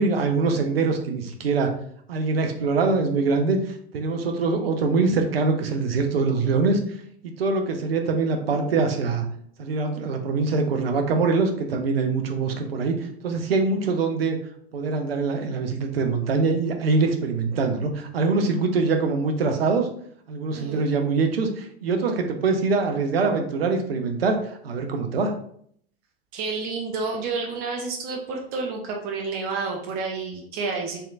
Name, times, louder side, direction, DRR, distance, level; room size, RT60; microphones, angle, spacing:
voice 1, 0.0-1.7 2.1-3.6 3.9-6.8 7.2-9.2 9.6-13.0 13.2-14.4 14.7-19.9 20.3-25.3, right 4 dB, 70° right, 4 dB, 0.6 m, -23 dB
voice 2, 26.3-31.0, right 4 dB, 30° right, 1 dB, 0.5 m, -30 dB
3.2 x 2.7 x 2.5 m, 0.63 s
figure-of-eight pair, 85°, 30 cm